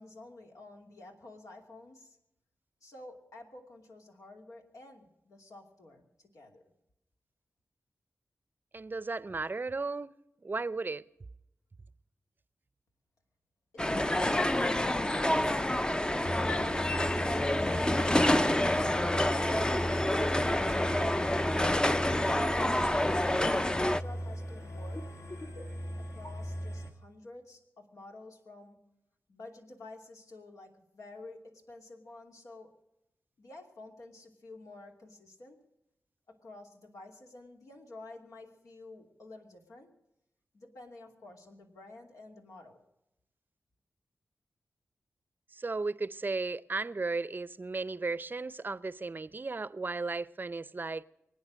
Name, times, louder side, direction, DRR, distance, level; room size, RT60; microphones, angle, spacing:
voice 1, 0.0-2.2 2.8-6.6 13.7-17.9 18.6-22.9 23.4-25.2 26.0-28.8 29.3-32.7 33.4-35.6 36.3-39.9 40.5-42.8, left 2 dB, 85° left, 2.8 m, -50 dB
voice 2, 8.7-10.1 10.4-11.0 45.5-51.0, right 3 dB, 35° right, 0.5 m, -35 dB
sound 1, 13.8-24.0, left 1 dB, 15° left, 0.5 m, -28 dB
sound 2, 16.2-26.9, equal, 65° left, 2.3 m, -38 dB
24.0 x 9.5 x 6.3 m
cardioid pair, 65°, 5 cm